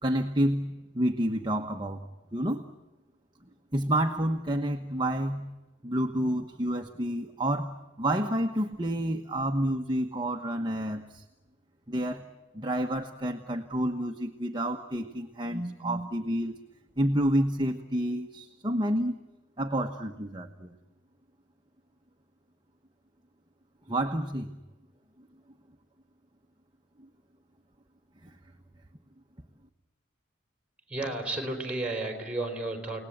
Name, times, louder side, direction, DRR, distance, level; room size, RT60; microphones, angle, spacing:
voice 1, 0.0-0.7 0.9-2.1 2.3-2.6 3.7-5.5 5.8-11.2 11.9-12.2 12.5-16.5 17.0-19.1 19.6-20.8 23.9-24.5, right 1 dB, 25° right, 4 dB, 1.1 m, -29 dB
voice 2, 30.9-33.0, right 2 dB, 5° right, 4 dB, 4.6 m, -32 dB
29.5 x 19.0 x 8.7 m, 1.1 s
head